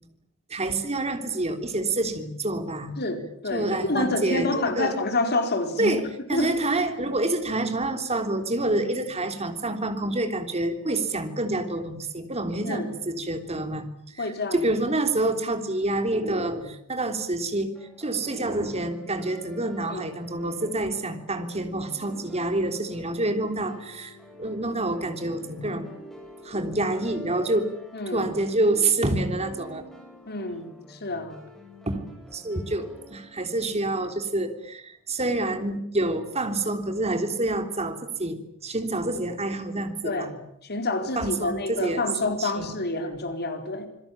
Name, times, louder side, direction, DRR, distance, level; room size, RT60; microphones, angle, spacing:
voice 1, 0.5-3.0 3.5-4.9 5.8-17.7 18.0-25.9 26.4-27.7 28.1-29.8 31.8-32.1 32.3-38.4 38.6-40.3 41.1-42.7, right 2 dB, 30° right, 7 dB, 3.4 m, -27 dB
voice 2, 3.0-5.9 6.3-6.5 12.6-12.9 14.2-14.6 19.9-20.0 27.9-28.3 30.3-31.4 40.0-43.9, left 2 dB, 45° left, 6 dB, 4.6 m, -28 dB
sound 1, 17.7-34.6, left 1 dB, ahead, 7.3 m, -49 dB
27.5 x 22.0 x 8.8 m, 0.73 s
head